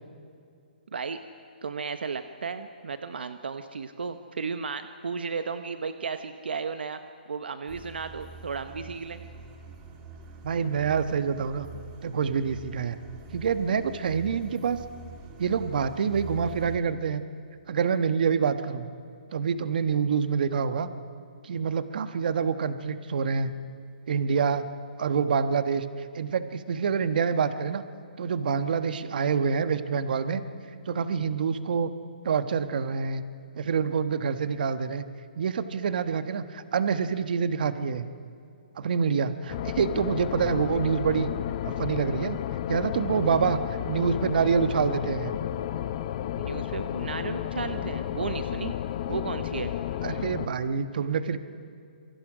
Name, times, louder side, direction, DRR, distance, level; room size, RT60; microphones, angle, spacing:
voice 1, 1.6-7.0 7.3-9.2 46.4-48.7 49.1-49.7, right 5 dB, 80° right, 9 dB, 1.1 m, -34 dB
sound 1, 7.7-16.8, right 4 dB, 25° right, 3.0 m, -45 dB
voice 2, 10.4-11.7 12.0-13.0 13.3-14.8 15.4-17.2 17.7-18.9 19.3-20.9 21.4-23.5 24.1-24.6 25.0-25.8 26.1-27.8 28.2-30.4 30.8-31.9 32.2-33.2 33.6-35.0 35.3-38.1 38.8-41.3 41.6-42.4 42.7-43.6 43.8-45.3 50.0-51.4, right 6 dB, 60° right, 10 dB, 1.3 m, -26 dB
sound 2, 39.5-50.5, left 11 dB, 40° left, 0.9 m, -32 dB
27.0 x 23.5 x 5.0 m, 2.4 s
hypercardioid pair, 150°, 5 cm